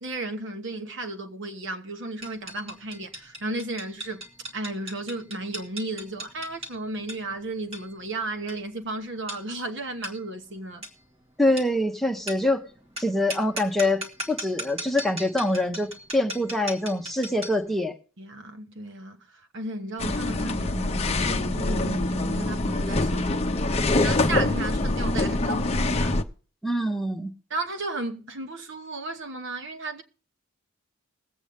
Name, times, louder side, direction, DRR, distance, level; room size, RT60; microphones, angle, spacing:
voice 1, 0.0-4.2 4.5-10.9 18.2-26.2 27.5-30.0, right 2 dB, 55° right, 1.2 m, -34 dB
sound 1, 2.2-17.7, right 1 dB, 30° right, 1.9 m, -39 dB
voice 2, 11.4-12.6 13.0-18.0 26.6-27.3, left 1 dB, ahead, 1.1 m, -25 dB
sound 2, 20.0-26.2, left 2 dB, 30° left, 0.7 m, -25 dB
21.0 x 8.2 x 3.6 m
head